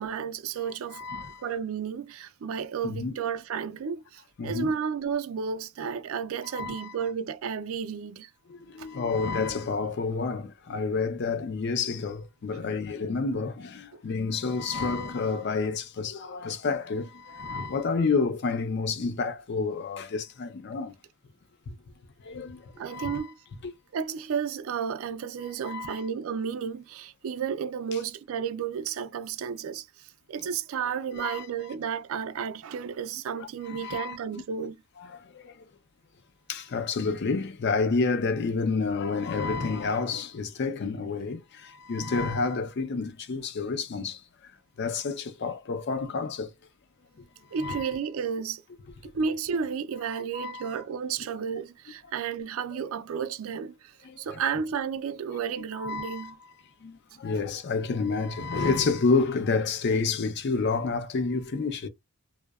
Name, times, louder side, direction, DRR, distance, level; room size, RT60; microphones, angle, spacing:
voice 1, 0.0-1.0 1.4-8.3 8.8-8.9 13.9-14.0 22.8-23.3 23.9-34.8 47.5-48.6 49.0-56.4, right 6 dB, 70° right, 0.4 m, -32 dB
voice 2, 0.9-1.4 2.8-3.2 4.4-4.7 6.5-7.0 8.5-20.9 22.2-23.3 23.6-23.7 25.6-26.1 31.1-31.5 33.4-34.2 35.0-35.6 36.5-44.5 44.8-46.5 47.6-47.9 50.1-50.7 54.0-54.4 55.7-56.3 56.8-61.9, left 4 dB, 50° left, 0.4 m, -29 dB
2.7 x 2.1 x 2.3 m
head